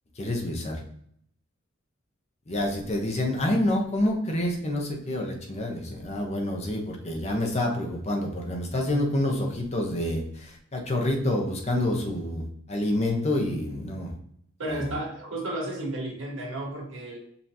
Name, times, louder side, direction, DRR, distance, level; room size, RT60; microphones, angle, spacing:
voice 1, 0.2-0.8 2.5-14.1 14.7-14.9, left 1 dB, 35° left, 1 dB, 0.9 m, -28 dB
voice 2, 14.6-17.2, right 1 dB, 65° right, 0 dB, 1.2 m, -33 dB
5.5 x 2.9 x 2.7 m, 0.66 s
head